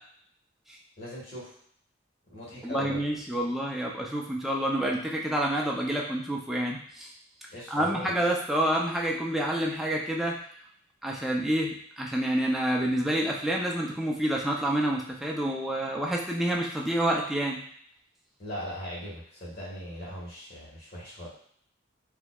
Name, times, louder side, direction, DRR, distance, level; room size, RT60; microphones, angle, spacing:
voice 1, 1.0-1.5 2.3-3.0 7.5-8.1 18.4-21.3, equal, 50° left, -7 dB, 1.5 m, -39 dB
voice 2, 2.6-7.1 7.7-10.4 11.0-17.6, right 1 dB, ahead, -2 dB, 0.4 m, -28 dB
4.2 x 2.8 x 2.3 m, 0.63 s
head